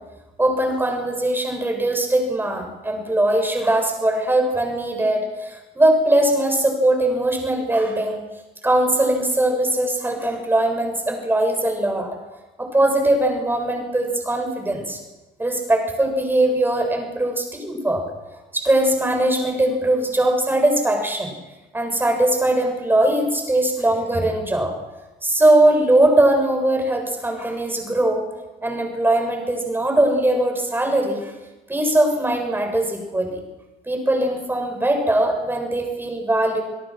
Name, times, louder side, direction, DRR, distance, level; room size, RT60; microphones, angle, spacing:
voice 1, 0.4-8.2 8.6-12.2 12.6-15.0 15.4-18.0 18.5-21.3 21.7-24.7 25.2-28.3 28.6-31.3 31.7-33.4 33.9-36.6, right 1 dB, 10° right, 3 dB, 7.3 m, -20 dB
28.0 x 18.0 x 6.2 m, 1.1 s
cardioid pair, 110°, 17 cm